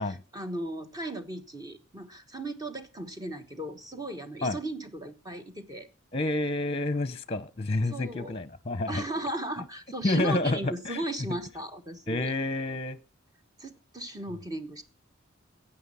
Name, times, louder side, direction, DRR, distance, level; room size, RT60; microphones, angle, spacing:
voice 1, 0.0-5.9 7.8-8.4 8.9-12.3 13.6-14.8, right 1 dB, 20° right, 1.2 m, -36 dB
voice 2, 6.1-9.0 10.0-11.0 12.1-13.0, left 2 dB, 30° left, 0.8 m, -29 dB
16.0 x 8.9 x 5.5 m
head